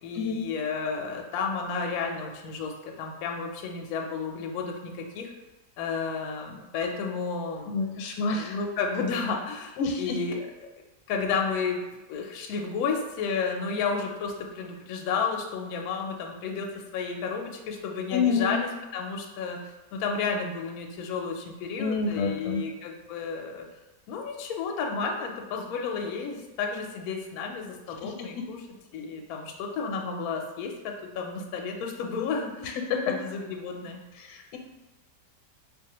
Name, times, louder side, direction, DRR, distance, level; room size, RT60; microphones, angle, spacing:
voice 1, 0.0-2.7 3.0-5.3 5.8-8.0 8.3-10.5 11.1-16.7 16.9-23.6 24.1-28.6 28.9-30.7 31.1-32.7 33.1-34.0, left 5 dB, 70° left, 2 dB, 0.9 m, -32 dB
voice 2, 7.7-8.6 9.8-10.2 18.1-18.6 21.8-22.6 28.0-28.4 32.6-33.2 34.2-34.6, left 5 dB, 85° left, 3 dB, 1.3 m, -28 dB
3.8 x 2.6 x 2.9 m, 1.1 s
omnidirectional pair, 1.9 m